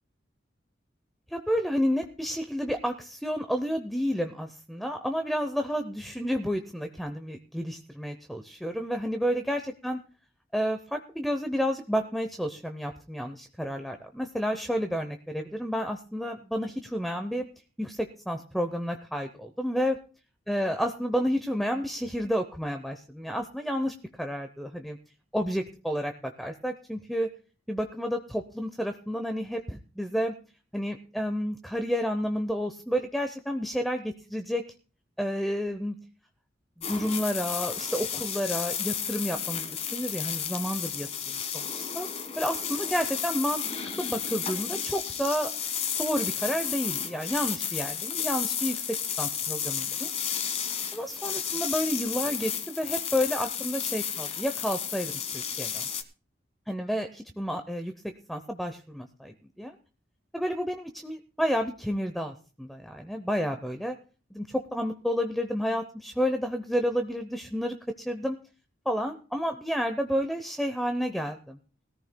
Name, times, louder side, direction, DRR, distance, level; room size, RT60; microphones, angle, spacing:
voice 1, 1.3-10.0 10.5-17.5 17.8-20.0 20.5-25.0 25.3-27.3 27.7-30.3 30.7-34.6 35.2-36.0 36.9-42.1 42.4-43.6 44.0-45.5 46.0-48.8 49.2-50.1 50.9-55.9 56.7-59.8 60.3-64.0 64.3-68.4 68.9-71.6, equal, ahead, 6 dB, 0.7 m, -30 dB
sound 1, 36.8-56.0, left 8 dB, 35° left, 1.2 m, -32 dB
20.0 x 14.0 x 2.2 m, 0.37 s
head